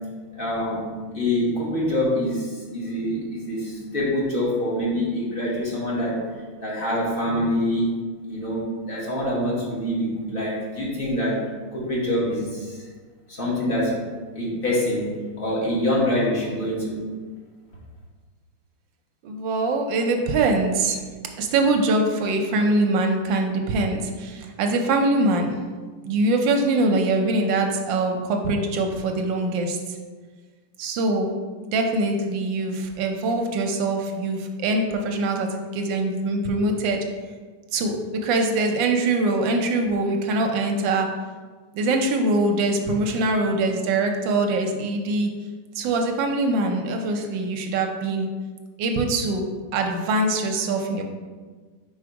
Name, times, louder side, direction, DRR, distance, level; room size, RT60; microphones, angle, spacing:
voice 1, 0.3-6.2 6.6-7.9 8.3-12.8 13.3-14.1 14.3-17.0, left 1 dB, 30° left, -6 dB, 1.4 m, -25 dB
voice 2, 19.2-21.0 21.4-25.5 26.0-30.0 30.8-37.0 37.7-41.1 41.7-45.3 45.7-48.3 48.8-51.0, right 2 dB, 70° right, 3 dB, 1.2 m, -23 dB
4.8 x 4.3 x 4.7 m, 1.4 s
omnidirectional pair, 2.4 m